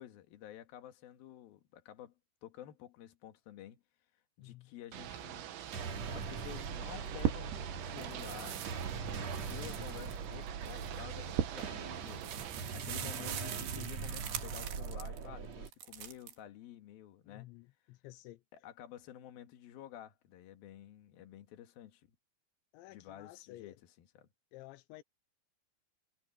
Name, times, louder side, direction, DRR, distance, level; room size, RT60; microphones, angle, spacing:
voice 1, 0.0-2.1 2.4-3.8 4.4-5.5 5.9-8.6 9.1-17.5 18.5-22.1 22.9-24.3, left 11 dB, 60° left, 3.3 m, -51 dB
voice 2, 4.4-4.7 17.3-18.4 22.7-23.8 24.5-25.0, left 17 dB, 85° left, 3.1 m, -52 dB
Ocean / Boat Water vehicle, 4.9-12.8, right 11 dB, 85° right, 4.1 m, -45 dB
sound 1, 5.5-15.7, right 5 dB, 40° right, 3.1 m, -42 dB
sound 2, 6.4-7.7 8.0-15.2 15.7-16.3, right 10 dB, 65° right, 3.8 m, -41 dB
omnidirectional pair, 5.2 m